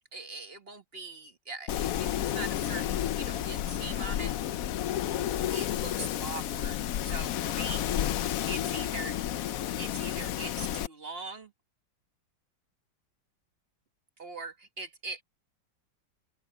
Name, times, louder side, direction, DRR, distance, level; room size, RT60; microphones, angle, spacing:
voice 1, 0.1-4.3 5.5-6.8 7.0-7.8 8.5-9.2 9.8-11.5 14.2-15.2, right 3 dB, 35° right, 1.4 m, -41 dB
Wind, 1.7-10.9, left 11 dB, 70° left, 0.8 m, -31 dB
open air
omnidirectional pair, 2.1 m